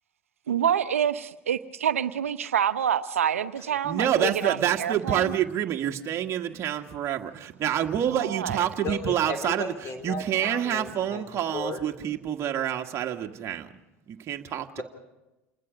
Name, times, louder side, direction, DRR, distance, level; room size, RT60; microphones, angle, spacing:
voice 1, 0.5-5.3 8.1-8.7, right 9 dB, 85° right, 0.9 m, -27 dB
voice 2, 3.8-9.7 10.0-13.7 14.1-14.8, right 10 dB, 40° right, 1.7 m, -27 dB
voice 3, 8.8-11.2 11.5-11.8, left 4 dB, 40° left, 3.9 m, -34 dB
28.5 x 20.5 x 5.2 m
hypercardioid pair, 85°, 7 cm